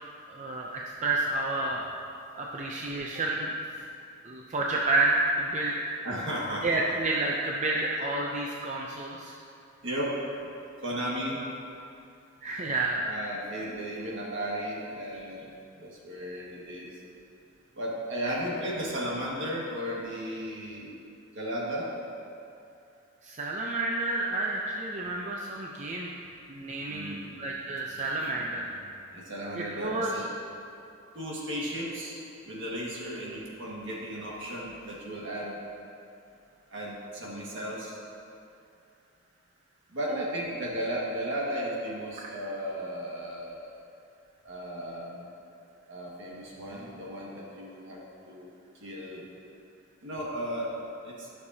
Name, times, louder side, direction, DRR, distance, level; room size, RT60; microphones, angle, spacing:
voice 1, 0.3-1.9 2.4-3.6 4.2-5.8 6.6-9.4 12.4-13.1 23.2-26.1 26.5-28.6 29.5-30.2 40.1-40.2 42.2-42.3, right 2 dB, 35° right, -2 dB, 0.5 m, -30 dB
voice 2, 6.0-6.8 9.8-10.2 10.8-11.4 12.9-15.5 15.8-16.9 17.8-21.0 21.3-21.9 26.9-27.4 27.9-28.9 29.1-30.3 31.1-32.2 32.5-35.6 36.7-38.0 39.9-43.7 44.5-45.3 45.9-49.2 50.0-50.7 51.0-51.3, equal, 65° right, -4 dB, 1.7 m, -35 dB
12.0 x 6.6 x 2.8 m, 2.6 s
head